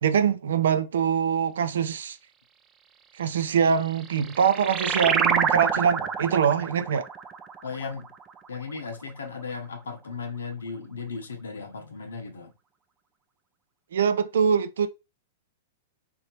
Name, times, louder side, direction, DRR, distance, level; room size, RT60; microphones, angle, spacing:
voice 1, 0.0-2.2 3.2-7.0 13.9-14.9, right 7 dB, 75° right, 0.5 m, -23 dB
sound 1, 3.8-8.9, right 6 dB, 25° right, 0.4 m, -28 dB
voice 2, 7.6-8.1 8.5-12.5, left 5 dB, 85° left, 0.9 m, -36 dB
3.5 x 2.7 x 2.9 m
hypercardioid pair, 115°, 0 cm